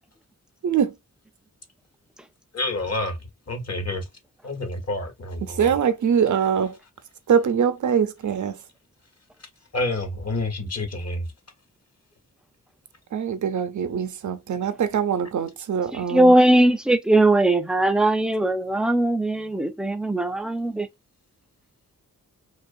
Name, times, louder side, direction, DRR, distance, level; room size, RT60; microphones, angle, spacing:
voice 1, 2.5-3.2 3.5-4.0 4.4-5.8 9.7-11.3, left 2 dB, 50° left, 1.0 m, -28 dB
voice 2, 5.4-6.7 7.3-8.6 13.1-16.3, right 7 dB, 60° right, 0.6 m, -23 dB
voice 3, 15.9-20.9, right 1 dB, ahead, 0.4 m, -19 dB
2.5 x 2.3 x 2.5 m
cardioid pair, 65°, 34 cm